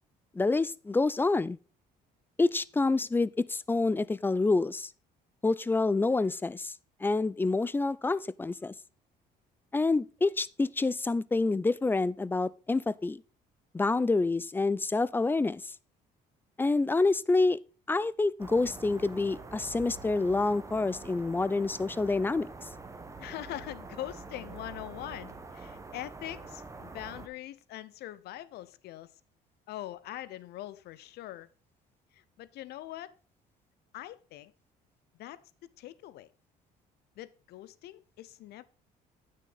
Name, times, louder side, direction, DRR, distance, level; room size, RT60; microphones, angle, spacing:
voice 1, 0.3-1.6 2.4-4.9 5.4-6.7 7.0-8.7 9.7-13.2 13.7-15.7 16.6-17.6 17.9-22.5, left 3 dB, 10° left, 0.3 m, -27 dB
sound 1, 18.4-27.3, right 3 dB, 20° right, 1.0 m, -45 dB
voice 2, 23.2-29.1 29.7-31.5 32.1-33.2 33.9-34.5 35.2-36.3 37.2-38.6, left 14 dB, 75° left, 0.7 m, -43 dB
9.6 x 6.4 x 3.9 m
cardioid pair, 110°, 17 cm